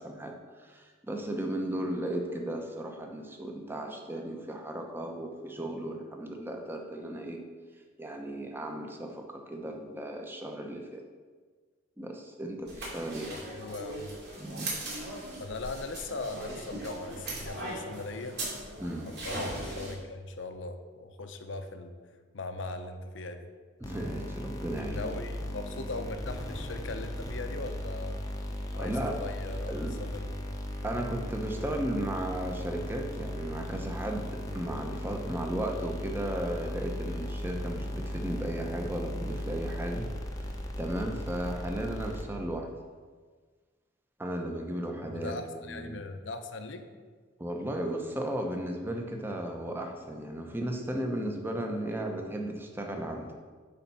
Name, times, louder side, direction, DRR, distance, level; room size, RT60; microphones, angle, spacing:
voice 1, 0.0-7.4 8.0-11.0 12.0-13.3 14.4-14.7 18.8-19.1 23.8-25.1 28.8-29.2 29.7-29.9 30.8-40.1 40.8-42.7 44.2-45.3 45.6-46.0 47.4-53.3, right 1 dB, 10° right, 2 dB, 0.8 m, -35 dB
sound 1, 12.7-19.9, right 1 dB, 55° right, 2.7 m, -39 dB
voice 2, 13.3-14.1 15.4-18.4 19.1-22.0 22.3-23.5 24.8-28.2 28.7-30.4 30.8-30.9 45.0-46.9, left 3 dB, 75° left, 7 dB, 0.7 m, -39 dB
sound 2, 23.8-42.6, equal, 20° left, 0.8 m, -37 dB
9.1 x 4.1 x 5.6 m, 1.5 s
head